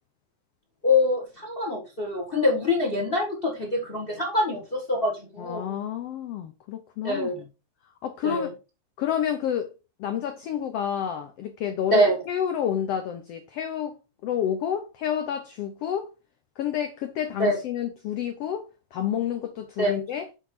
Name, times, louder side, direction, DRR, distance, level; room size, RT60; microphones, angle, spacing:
voice 1, 0.8-5.7 7.0-7.3 8.2-8.5 11.9-12.2 17.4-17.6 19.8-19.9, left 1 dB, 35° left, 0.8 m, -24 dB
voice 2, 5.4-7.4 8.0-8.5 9.0-9.7 10.0-14.0 14.2-16.1 16.6-18.6 18.9-20.2, left 9 dB, 80° left, 1.4 m, -29 dB
8.0 x 4.6 x 4.3 m
omnidirectional pair, 3.7 m